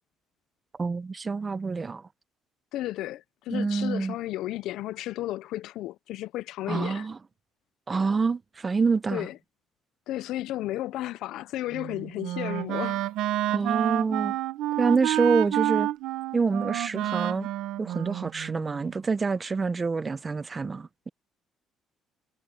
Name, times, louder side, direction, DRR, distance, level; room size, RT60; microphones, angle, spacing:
voice 1, 0.8-2.0 3.5-4.1 6.7-7.2 7.9-9.3 13.5-14.4 14.8-15.9 16.3-17.5 17.8-21.1, right 4 dB, 20° right, 0.6 m, -27 dB
voice 2, 2.7-7.1 9.1-9.4 10.1-13.1, left 15 dB, 75° left, 0.4 m, -33 dB
Wind instrument woodwind instrument, 11.7-18.9, right 14 dB, 85° right, 1.0 m, -29 dB
cardioid pair, 150°, 0 cm